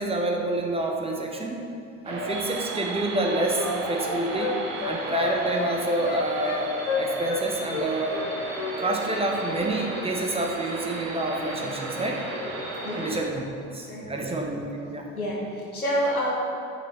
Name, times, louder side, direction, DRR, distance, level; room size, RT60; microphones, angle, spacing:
voice 1, 0.0-1.6 2.0-4.6 4.8-8.2 8.8-12.2 12.9-13.4 13.7-15.1, right 2 dB, 15° right, 0 dB, 0.7 m, -28 dB
sound 1, 2.0-13.2, right 2 dB, 65° right, 1.4 m, -34 dB
Wind instrument woodwind instrument, 2.8-7.4 7.7-8.8 9.0-9.2, left 6 dB, 70° left, 0.7 m, -32 dB
voice 2, 13.9-14.3 15.2-16.3, equal, 85° left, -4 dB, 1.1 m, -28 dB
9.1 x 5.9 x 3.0 m, 2.6 s
figure-of-eight pair, 60°, 42 cm